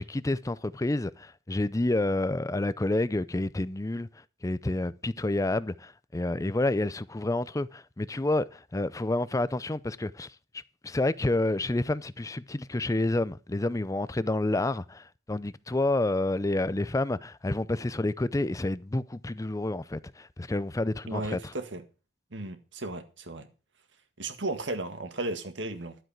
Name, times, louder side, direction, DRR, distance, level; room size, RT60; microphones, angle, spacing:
voice 1, 0.0-4.1 4.4-10.3 10.8-21.4, left 2 dB, 15° left, 0.5 m, -29 dB
voice 2, 21.1-21.8 22.3-23.5 24.2-26.0, right 2 dB, 70° right, 1.8 m, -35 dB
12.0 x 7.9 x 5.9 m
head